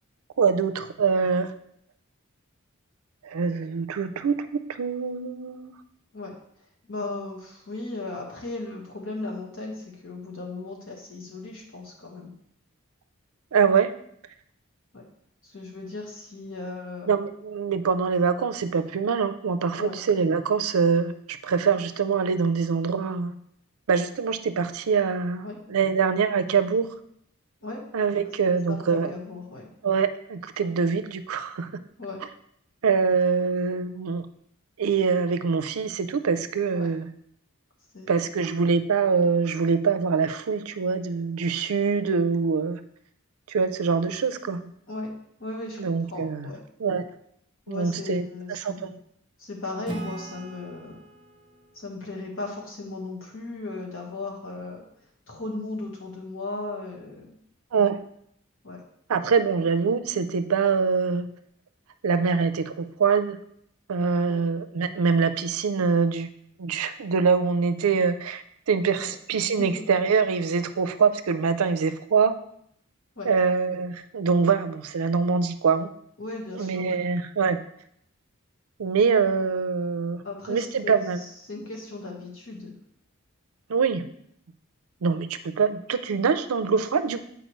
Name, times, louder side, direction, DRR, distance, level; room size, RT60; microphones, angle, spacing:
voice 1, 0.4-1.5 3.2-5.7 13.5-13.9 17.1-23.3 23.9-26.9 27.9-29.1 29.8-31.8 32.8-34.3 34.8-37.1 38.1-42.8 43.5-44.6 45.8-46.5 46.8-47.1 47.7-48.9 57.7-58.0 59.1-61.3 62.0-63.4 63.9-66.3 66.6-72.3 73.2-75.9 76.6-77.6 78.8-81.2 83.7-84.1 85.0-87.2, right 5 dB, 90° right, 11 dB, 0.5 m, -24 dB
voice 2, 6.9-12.3 14.9-15.0 15.4-17.1 19.8-20.0 25.4-25.6 27.6-27.8 28.7-29.7 32.0-32.2 36.7-36.9 37.9-38.2 44.9-45.1 45.4-46.6 47.7-48.9 49.4-51.0 51.7-54.8 55.3-57.3 58.6-58.8 64.3-64.5 69.0-69.9 73.2-73.3 76.2-77.0 80.2-82.8, left 2 dB, 65° left, -1 dB, 1.5 m, -36 dB
Acoustic guitar / Strum, 49.9-53.3, right 1 dB, 25° right, 0.7 m, -41 dB
7.8 x 4.8 x 3.1 m, 0.71 s
head